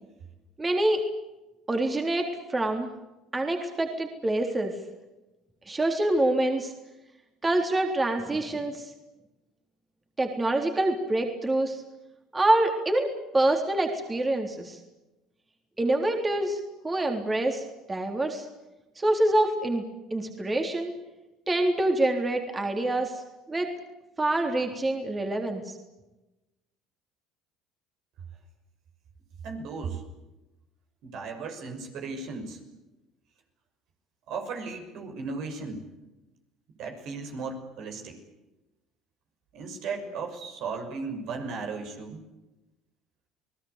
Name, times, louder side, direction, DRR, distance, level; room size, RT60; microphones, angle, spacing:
voice 1, 0.6-1.0 1.7-2.9 3.3-4.7 5.7-6.7 7.4-8.9 10.2-11.8 12.3-14.8 15.8-18.5 19.0-19.8 20.1-21.0 21.5-23.2 23.5-23.7 24.2-25.8, right 1 dB, 20° right, 3 dB, 3.7 m, -26 dB
voice 2, 29.4-30.0 31.0-32.6 34.3-35.8 36.8-38.2 39.5-42.2, right 4 dB, 65° right, 4 dB, 6.1 m, -36 dB
29.0 x 19.5 x 8.3 m, 1.0 s
hypercardioid pair, 75°, 0 cm